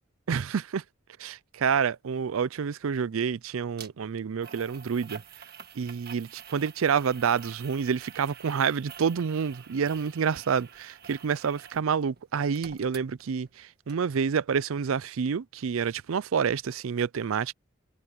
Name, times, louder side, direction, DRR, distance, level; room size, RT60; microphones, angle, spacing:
voice 1, 0.3-0.8 1.2-5.2 5.8-17.5, right 6 dB, 80° right, 0.4 m, -28 dB
sound 1, 3.8-3.9 4.4-11.9 12.2-13.6 13.9-14.0, right 7 dB, 45° right, 1.7 m, -48 dB
head